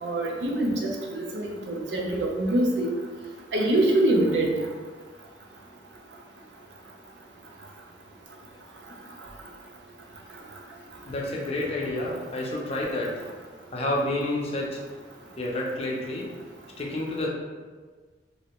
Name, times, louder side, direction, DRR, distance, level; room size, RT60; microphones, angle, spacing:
voice 1, 0.0-2.9 3.5-4.5, right 1 dB, 80° right, 0 dB, 0.5 m, -24 dB
voice 2, 11.1-13.2 13.7-14.8 15.4-16.3 16.8-17.3, left 1 dB, 35° left, -2 dB, 0.5 m, -29 dB
3.1 x 2.5 x 2.9 m, 1.4 s
head